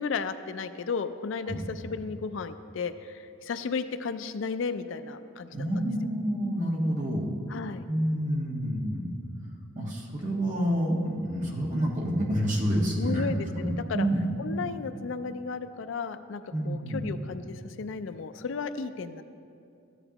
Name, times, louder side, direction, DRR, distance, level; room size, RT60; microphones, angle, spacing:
voice 1, 0.0-5.7 7.5-7.8 13.0-14.1 14.4-19.2, left 5 dB, 70° left, 11 dB, 0.4 m, -34 dB
voice 2, 5.5-7.3 7.9-9.1 9.7-13.3 13.6-14.3 16.5-17.0, equal, 40° right, -2 dB, 1.4 m, -28 dB
14.0 x 9.9 x 2.9 m, 2.5 s
head